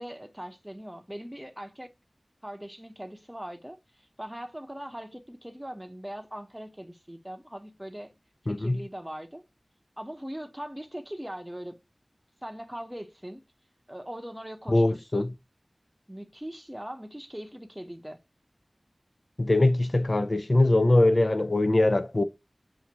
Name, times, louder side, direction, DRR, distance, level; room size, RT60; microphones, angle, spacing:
voice 1, 0.0-1.9 2.4-8.1 8.5-9.4 10.0-11.8 12.4-13.4 13.9-15.3 16.1-18.2, equal, 10° right, 0.7 m, -40 dB
voice 2, 8.5-8.8 14.7-15.3 19.4-22.2, left 2 dB, 50° left, 0.4 m, -22 dB
7.1 x 2.6 x 2.9 m
wide cardioid pair, 55°, 0 cm